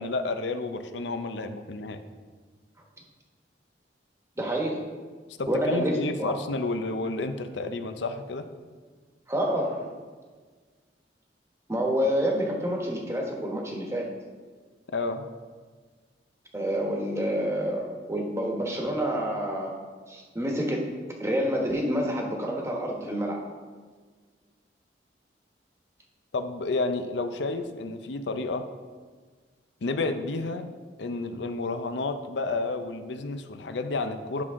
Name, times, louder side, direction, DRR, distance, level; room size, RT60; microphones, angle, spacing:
voice 1, 0.0-2.0 5.4-8.5 14.9-15.3 26.3-28.7 29.8-30.6 31.0-34.4, left 3 dB, 80° left, 8 dB, 0.6 m, -30 dB
voice 2, 4.4-4.9 5.5-6.3 9.3-9.9 11.7-14.1 16.5-19.7 20.1-20.9 21.2-23.4, equal, 15° right, -1 dB, 1.2 m, -28 dB
10.5 x 6.1 x 3.7 m, 1.5 s
head